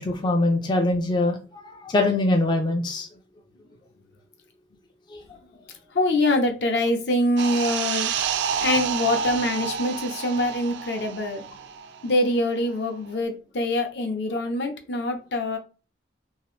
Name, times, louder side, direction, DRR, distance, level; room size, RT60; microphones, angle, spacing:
voice 1, 0.0-3.1 5.1-5.2, left 2 dB, 25° left, 3 dB, 0.3 m, -23 dB
voice 2, 5.9-8.1 8.6-11.4 12.0-15.6, left 1 dB, 70° left, 5 dB, 0.6 m, -24 dB
sound 1, 7.4-12.4 12.7-12.9, right 7 dB, 75° right, 0.3 m, -29 dB
2.8 x 2.4 x 3.0 m, 0.34 s
head